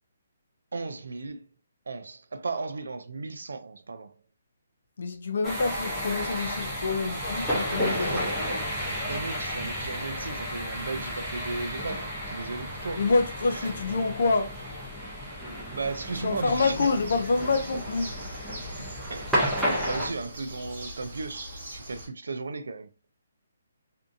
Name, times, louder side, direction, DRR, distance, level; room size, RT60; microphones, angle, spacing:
voice 1, 0.7-1.5 1.9-4.1 7.8-8.3 8.7-13.0 13.5-13.7 15.7-16.8 18.8-22.9, right 3 dB, 85° right, 0.4 m, -36 dB
voice 2, 5.0-8.6 12.9-14.8 16.2-18.2, left 3 dB, 50° left, 0.4 m, -27 dB
sound 1, 5.4-20.1, equal, ahead, 0.5 m, -32 dB
Bird, 16.5-22.1, equal, 40° right, 1.0 m, -42 dB
2.6 x 2.5 x 2.4 m
hypercardioid pair, 180°, 0 cm